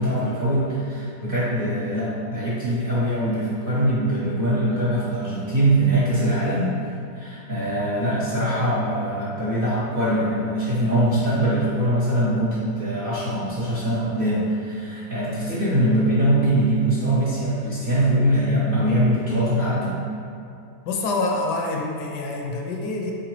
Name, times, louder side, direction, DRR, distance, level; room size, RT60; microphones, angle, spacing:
voice 1, 0.0-6.7 7.1-20.0, right 1 dB, 50° right, -10 dB, 0.6 m, -22 dB
voice 2, 20.9-23.1, left 3 dB, 75° left, 1 dB, 1.1 m, -26 dB
4.4 x 3.8 x 3.0 m, 2.5 s
omnidirectional pair, 1.9 m